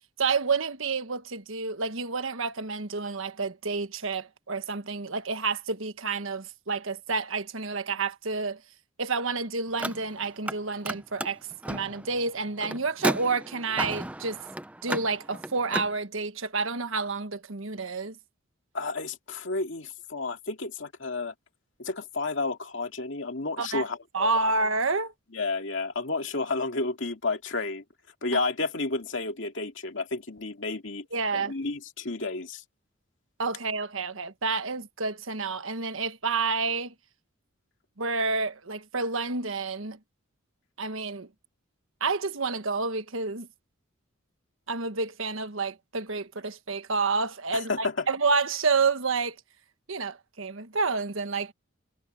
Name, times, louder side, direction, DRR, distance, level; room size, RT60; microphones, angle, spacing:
voice 1, 0.2-8.6 9.0-11.4 11.7-14.4 14.8-18.1 23.6-23.8 24.1-25.1 31.1-31.5 33.4-36.9 38.0-40.0 40.8-41.3 42.0-43.5 44.7-49.4 49.9-51.5, right 4 dB, 70° right, 1.4 m, -29 dB
Car, 9.7-10.6 10.8-15.9, right 1 dB, 5° right, 0.5 m, -34 dB
voice 2, 18.7-21.3 21.8-24.3 25.3-27.8 28.2-31.0 31.3-32.6 47.5-48.1, left 3 dB, 60° left, 2.4 m, -31 dB
head